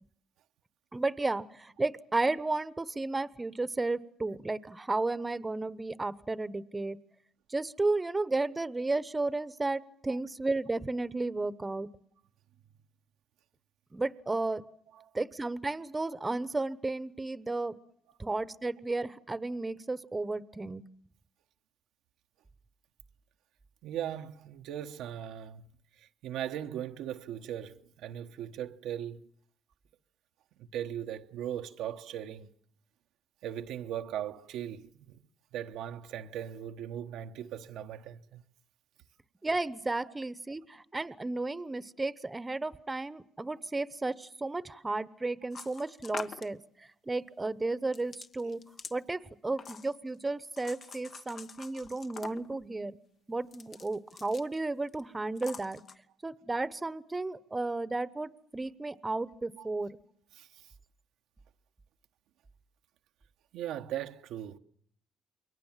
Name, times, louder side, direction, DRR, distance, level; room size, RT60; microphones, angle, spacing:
voice 1, 0.9-7.0 7.5-11.9 13.9-14.6 15.1-17.7 18.2-20.8 39.4-48.6 48.9-53.0 53.3-55.8 56.2-60.0, right 2 dB, 20° right, 1.0 m, -33 dB
voice 2, 23.8-25.7 26.0-29.2 30.6-32.5 33.4-35.2 35.5-38.4 59.6-59.7 60.4-60.5 63.5-64.6, right 10 dB, 90° right, 1.1 m, -38 dB
sound 1, 45.5-46.5 47.9-49.0 49.6-50.1 50.6-52.6 53.4-54.6 54.9-55.0 55.4-55.9, left 5 dB, 55° left, 1.2 m, -45 dB
28.5 x 22.5 x 7.4 m
cardioid pair, 90°, 0 cm